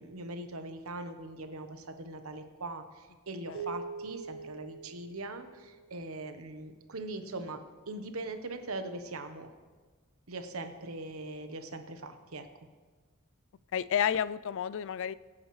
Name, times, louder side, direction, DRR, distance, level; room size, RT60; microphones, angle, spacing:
voice 1, 0.0-7.6 7.9-9.5 10.3-12.5, right 2 dB, 80° right, 8 dB, 1.1 m, -41 dB
sound 1, 3.5-6.1, right 4 dB, 60° right, 1.2 m, -43 dB
voice 2, 13.7-15.1, left 8 dB, 60° left, 17 dB, 0.3 m, -30 dB
22.0 x 8.9 x 3.2 m, 1.4 s
head